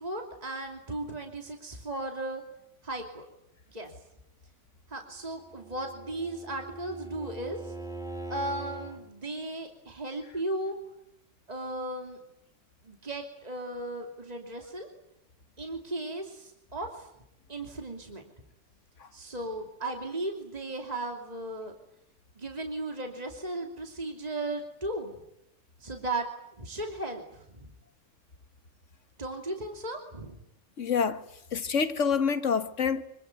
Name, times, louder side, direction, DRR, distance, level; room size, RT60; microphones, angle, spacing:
voice 1, 0.0-2.4 2.8-3.3 3.7-3.9 4.9-7.7 8.3-10.7 11.5-12.2 12.8-14.9 15.6-17.1 17.5-18.2 19.1-21.7 22.4-25.2 25.8-26.3 26.6-27.7 29.2-30.4, right 1 dB, 35° right, 3.0 m, -36 dB
Bowed string instrument, 5.3-9.0, right 3 dB, 5° right, 3.4 m, -41 dB
voice 2, 30.8-33.0, left 6 dB, 90° left, 1.7 m, -27 dB
26.0 x 24.0 x 9.3 m
omnidirectional pair, 1.2 m